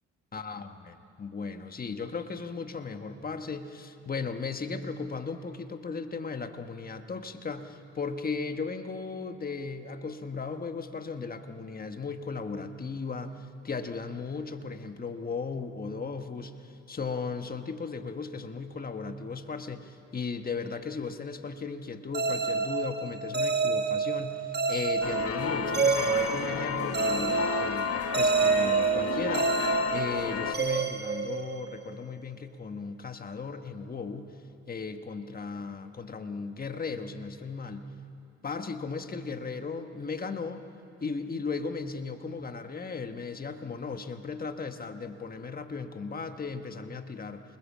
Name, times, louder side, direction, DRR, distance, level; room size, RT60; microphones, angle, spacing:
voice 1, 0.3-34.4 34.7-37.9 38.4-40.6 41.0-47.4, left 4 dB, 30° left, 7 dB, 1.4 m, -36 dB
sound 1, 22.1-32.0, right 5 dB, 35° right, 1.4 m, -28 dB
sound 2, 25.0-30.5, left 7 dB, 50° left, 1.3 m, -32 dB
27.0 x 20.5 x 7.4 m, 2.7 s
cardioid pair, 90°, 30 cm